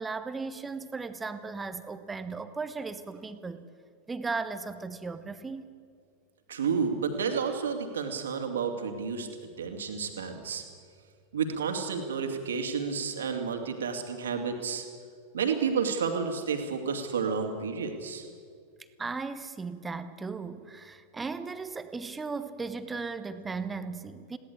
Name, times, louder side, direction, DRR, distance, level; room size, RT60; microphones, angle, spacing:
voice 1, 0.0-3.7 4.1-5.7 19.0-24.4, right 4 dB, 10° right, 10 dB, 1.2 m, -36 dB
voice 2, 6.5-9.3 9.6-10.6 11.3-14.9 15.3-18.3, right 6 dB, 65° right, 4 dB, 2.6 m, -31 dB
21.5 x 17.0 x 8.6 m, 2.2 s
figure-of-eight pair, 90°, 0 cm